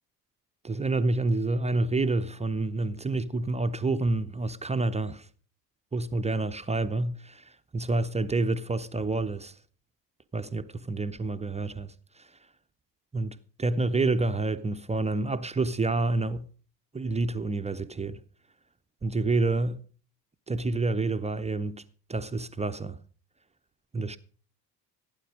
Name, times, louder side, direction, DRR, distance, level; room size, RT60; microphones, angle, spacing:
voice 1, 0.6-5.3 5.9-9.6 10.3-12.4 13.1-16.5 16.9-18.2 19.0-19.8 20.5-21.8 22.1-23.0 23.9-24.2, right 3 dB, 15° right, 0.7 m, -28 dB
15.5 x 9.3 x 5.2 m
figure-of-eight pair, 55°, 49 cm